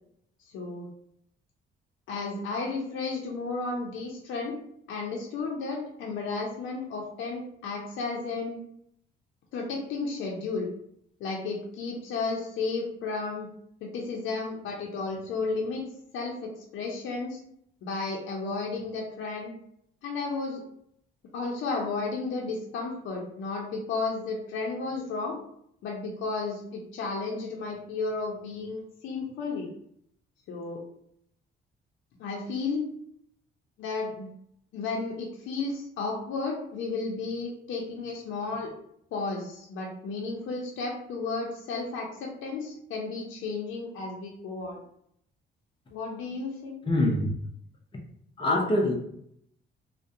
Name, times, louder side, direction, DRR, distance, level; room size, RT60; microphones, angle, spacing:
voice 1, 0.5-0.9 2.1-4.5 4.9-8.6 9.5-10.7 11.2-13.5 13.8-15.8 16.1-17.4 17.8-19.5 20.0-20.6 21.3-25.4 25.8-29.7 30.5-30.8 32.2-32.8 33.8-34.3 34.7-38.7 39.1-44.8 45.9-46.8, left 3 dB, 80° left, -1 dB, 0.5 m, -33 dB
voice 2, 46.9-47.3 48.4-48.9, left 1 dB, 25° left, -1 dB, 0.7 m, -24 dB
2.3 x 2.1 x 2.6 m, 0.69 s
cardioid pair, 90°, 20 cm